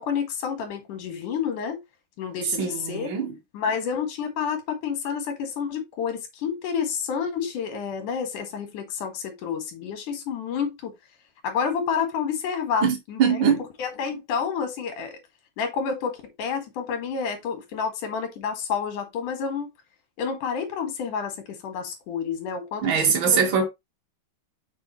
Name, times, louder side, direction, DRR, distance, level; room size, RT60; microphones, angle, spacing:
voice 1, 0.0-1.8 2.2-3.1 3.5-10.9 11.4-13.4 13.8-15.2 15.6-19.7 20.2-23.4, left 6 dB, 60° left, 3.0 m, -29 dB
voice 2, 2.6-3.3 12.8-13.6 22.8-23.7, right 6 dB, 35° right, 2.4 m, -22 dB
7.5 x 5.6 x 3.1 m
omnidirectional pair, 4.5 m